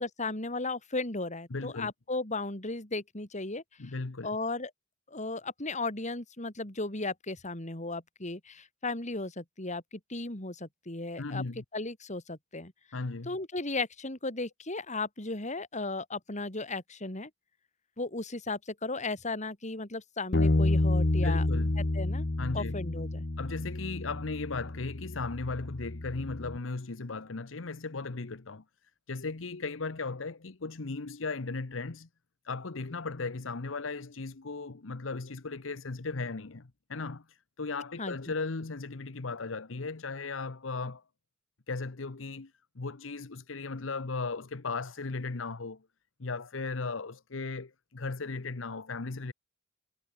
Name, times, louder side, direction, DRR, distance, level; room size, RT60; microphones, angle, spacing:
voice 1, 0.0-3.9 4.2-4.7 5.1-11.4 11.7-12.7 13.3-17.3 18.0-21.5 21.8-22.3 22.5-23.3 38.0-38.3, left 3 dB, 40° left, 3.9 m, -35 dB
voice 2, 1.5-1.9 3.8-4.4 11.2-11.6 12.9-13.4 21.2-21.8 22.4-22.8 23.4-28.6 29.1-32.1 32.4-41.0 41.7-45.8 46.2-49.3, left 3 dB, 80° left, 1.0 m, -36 dB
Bass guitar, 20.3-26.6, left 2 dB, 60° left, 1.3 m, -29 dB
head